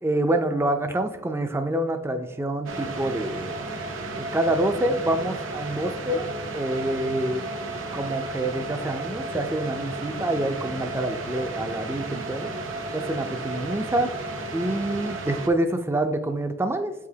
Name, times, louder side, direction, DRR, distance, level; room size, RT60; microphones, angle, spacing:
voice 1, 0.0-3.5 4.2-6.3 6.5-7.4 7.9-12.5 12.9-14.1 14.5-16.9, right 1 dB, 10° right, 7 dB, 0.3 m, -26 dB
sound 1, 2.7-15.5, right 2 dB, 80° right, 0.8 m, -33 dB
8.0 x 4.8 x 2.7 m, 0.97 s
head